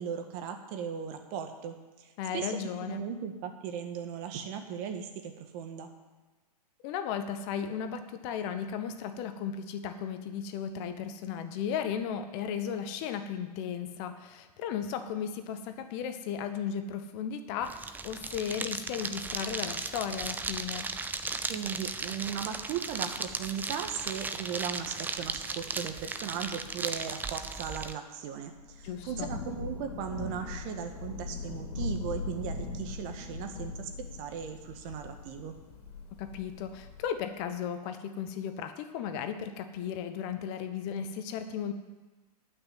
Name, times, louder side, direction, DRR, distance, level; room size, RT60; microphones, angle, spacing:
voice 1, 0.0-2.1 2.3-2.5 2.8-5.9 21.5-35.5, right 8 dB, 40° right, 5 dB, 1.7 m, -37 dB
voice 2, 2.2-3.0 6.8-20.9 28.8-29.3 36.2-41.7, left 8 dB, 45° left, 8 dB, 1.2 m, -35 dB
sound 1, 17.6-27.9, right 4 dB, 10° right, 0.5 m, -36 dB
Thunder / Rain, 28.6-37.2, left 4 dB, 65° left, 2.8 m, -40 dB
11.0 x 6.2 x 9.3 m, 1.2 s
hypercardioid pair, 120°, 20 cm